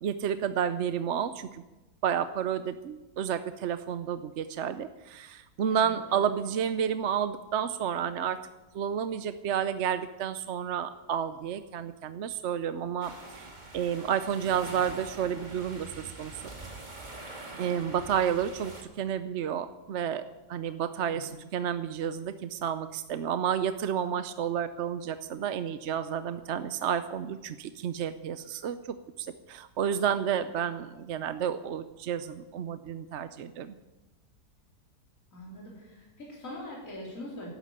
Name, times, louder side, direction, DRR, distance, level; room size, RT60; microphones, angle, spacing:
voice 1, 0.0-1.6 2.0-8.4 8.7-15.9 16.2-16.5 17.6-20.2 20.5-28.8 29.2-33.7, right 8 dB, 60° right, 11 dB, 0.8 m, -31 dB
voice 2, 5.7-6.3 17.7-17.8 21.1-21.4 35.3-37.5, left 1 dB, 55° left, -4 dB, 4.3 m, -43 dB
sound 1, 13.0-18.8, right 2 dB, 30° right, 2.1 m, -44 dB
12.5 x 12.0 x 8.8 m, 1.1 s
omnidirectional pair, 1.7 m